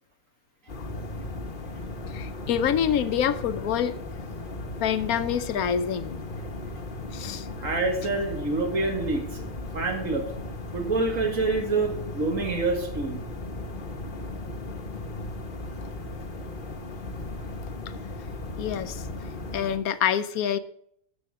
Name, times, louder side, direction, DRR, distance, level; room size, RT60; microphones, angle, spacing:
sound 1, 0.7-19.8, left 2 dB, 40° left, 1.1 m, -36 dB
voice 1, 2.1-3.9 4.8-6.2 7.1-7.5 18.6-19.1 19.5-20.6, left 8 dB, 75° left, 12 dB, 1.1 m, -26 dB
voice 2, 7.6-10.3 10.7-13.2, right 3 dB, 60° right, 2 dB, 2.3 m, -27 dB
13.5 x 8.5 x 3.7 m, 0.69 s
omnidirectional pair, 1.5 m